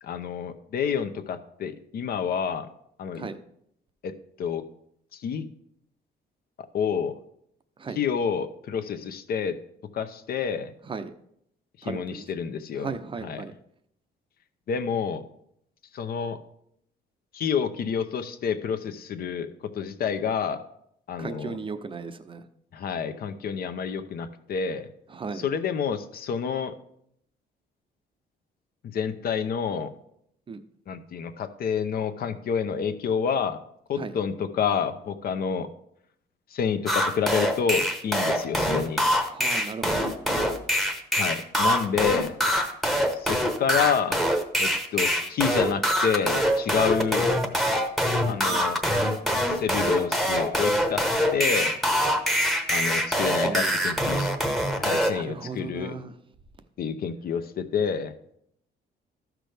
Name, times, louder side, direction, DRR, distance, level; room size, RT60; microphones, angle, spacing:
voice 1, 0.0-2.7 3.0-3.3 4.0-4.1 4.4-4.6 5.1-5.4 6.7-7.1 7.9-9.5 9.9-10.7 11.8-12.9 13.2-13.4 14.7-15.2 15.9-16.4 17.3-19.5 19.7-20.6 21.1-21.6 22.7-24.9 25.3-26.7 28.8-29.9 30.9-33.6 33.9-35.7 36.5-39.0 41.1-42.3 43.1-44.2 44.6-47.3 48.3-48.8 49.5-51.0 51.3-51.8 52.7-54.3 54.8-55.9 56.8-58.1, left 7 dB, 55° left, 9 dB, 0.8 m, -28 dB
voice 2, 11.8-12.3 12.8-13.5 21.2-22.4 25.1-25.4 30.5-30.6 34.0-34.2 39.3-40.1 48.2-48.6 53.4-53.8 55.1-56.1, right 4 dB, 30° right, 10 dB, 0.6 m, -36 dB
sound 1, 36.9-55.1, equal, ahead, 0.9 m, -24 dB
13.5 x 6.1 x 3.4 m, 0.72 s
cardioid pair, 130°, 19 cm